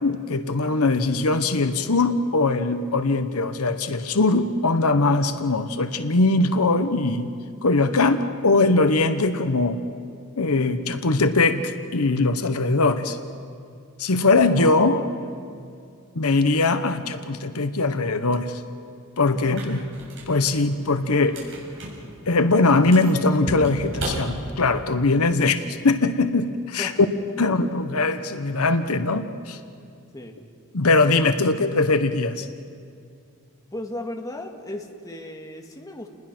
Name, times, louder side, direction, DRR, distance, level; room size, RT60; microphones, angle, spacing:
voice 1, 0.0-7.3 7.6-9.8 10.4-13.2 14.0-15.0 16.1-18.6 19.2-19.8 20.3-21.4 22.3-26.9 27.4-29.6 30.7-32.5, left 3 dB, 75° left, 9 dB, 1.0 m, -21 dB
voice 2, 14.5-15.6 19.3-19.6 26.8-27.0 27.3-27.5 30.1-30.4 33.7-36.1, left 1 dB, 15° left, 2 dB, 1.9 m, -36 dB
sound 1, 19.4-24.9, right 1 dB, 60° right, 7.2 m, -36 dB
29.5 x 20.5 x 6.1 m, 2.3 s
head